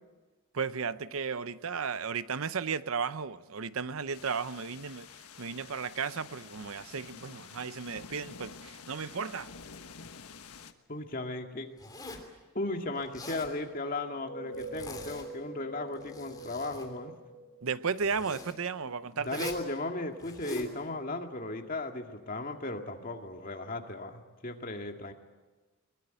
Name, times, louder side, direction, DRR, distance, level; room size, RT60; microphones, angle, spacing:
voice 1, 0.5-5.1 5.4-9.5 17.6-19.5, right 5 dB, 70° right, 0.7 m, -34 dB
sound 1, 4.1-10.7, left 5 dB, 80° left, 1.4 m, -49 dB
voice 2, 10.9-11.7 12.5-17.1 19.1-25.1, left 2 dB, 40° left, 2.1 m, -36 dB
Zipper (clothing), 11.8-12.3 13.0-13.5 14.5-15.4 15.9-16.9 18.0-18.5 19.2-19.7 20.2-20.7, left 2 dB, 15° left, 3.2 m, -43 dB
sound 2, 14.0-18.6, right 1 dB, 55° left, 5.7 m, -45 dB
22.5 x 21.5 x 9.1 m
head